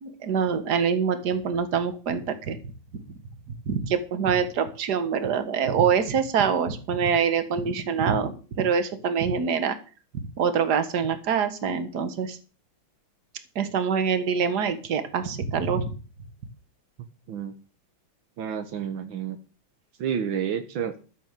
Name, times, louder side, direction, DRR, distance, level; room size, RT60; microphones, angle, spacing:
voice 1, 0.0-2.6 3.7-8.3 8.6-9.8 10.1-12.4 13.6-15.9, right 6 dB, 55° right, 11 dB, 1.9 m, -25 dB
voice 2, 18.4-19.4 20.0-20.9, right 8 dB, 80° right, 9 dB, 1.8 m, -29 dB
13.0 x 7.6 x 6.7 m, 0.35 s
omnidirectional pair, 2.2 m